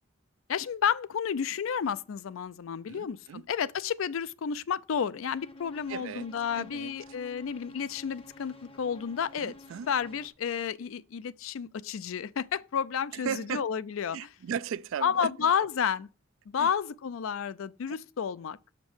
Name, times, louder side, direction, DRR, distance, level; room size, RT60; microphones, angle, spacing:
voice 1, 0.5-9.5 9.9-14.3 15.0-16.1 16.5-18.6, left 7 dB, 75° left, 0.4 m, -31 dB
voice 2, 2.9-3.5 5.9-6.3 6.5-6.9 9.4-9.9 13.1-13.6 14.1-15.5 16.6-16.7 17.9-18.0, right 7 dB, 70° right, 0.3 m, -36 dB
sound 1, 5.2-10.3, left 2 dB, 25° left, 0.8 m, -51 dB
6.3 x 5.2 x 6.1 m
head